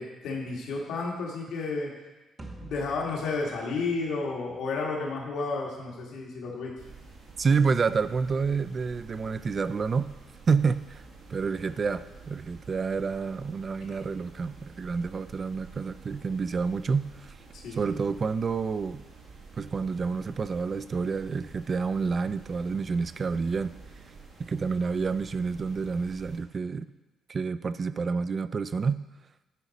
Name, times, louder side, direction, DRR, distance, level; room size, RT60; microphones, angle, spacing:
voice 1, 0.0-1.9 2.6-6.7 17.5-17.8, left 3 dB, 85° left, -2 dB, 1.7 m, -32 dB
sound 1, 2.4-4.8, right 2 dB, 25° right, 1.0 m, -47 dB
sound 2, 6.8-26.4, right 4 dB, 80° right, 1.5 m, -50 dB
voice 2, 7.4-10.1 10.5-11.0 11.3-17.3 17.7-19.0 19.6-23.7 24.5-26.9 27.3-29.0, right 5 dB, 40° right, 14 dB, 0.3 m, -28 dB
9.9 x 4.8 x 4.1 m, 1.1 s
cardioid pair, 90°, 0 cm